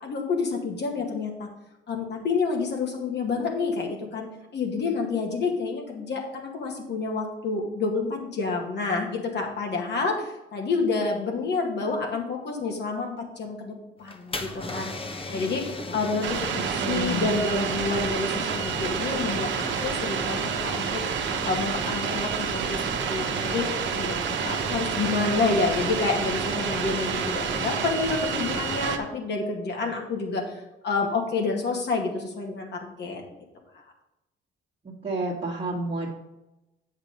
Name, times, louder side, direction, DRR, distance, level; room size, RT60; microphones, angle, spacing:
voice 1, 0.0-1.5 1.9-4.3 4.5-14.9 15.3-20.9 21.5-33.2, left 4 dB, 60° left, 1 dB, 2.0 m, -29 dB
sound 1, 14.0-28.9, left 2 dB, 25° left, 1.0 m, -37 dB
sound 2, 16.2-29.0, right 7 dB, 70° right, 1.0 m, -29 dB
voice 2, 16.5-17.3 34.8-36.1, right 2 dB, 30° right, -4 dB, 1.6 m, -30 dB
7.9 x 5.7 x 5.3 m, 0.95 s
cardioid pair, 90°, 20 cm